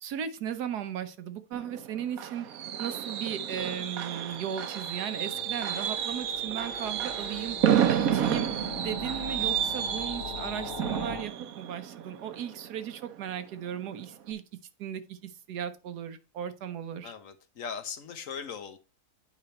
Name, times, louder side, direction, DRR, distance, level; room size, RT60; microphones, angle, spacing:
voice 1, 0.0-2.5 2.8-7.6 7.9-8.5 8.8-14.4 14.8-17.1, right 9 dB, 85° right, 11 dB, 1.4 m, -36 dB
Fireworks, 1.5-13.2 13.6-13.9 14.1-14.2, right 9 dB, 65° right, 1.1 m, -31 dB
sound 1, 4.6-11.2, left 4 dB, 40° left, 1.0 m, -42 dB
voice 2, 5.3-5.6 17.0-18.8, left 6 dB, 60° left, 10 dB, 1.2 m, -40 dB
8.8 x 5.2 x 4.2 m, 0.32 s
omnidirectional pair, 1.7 m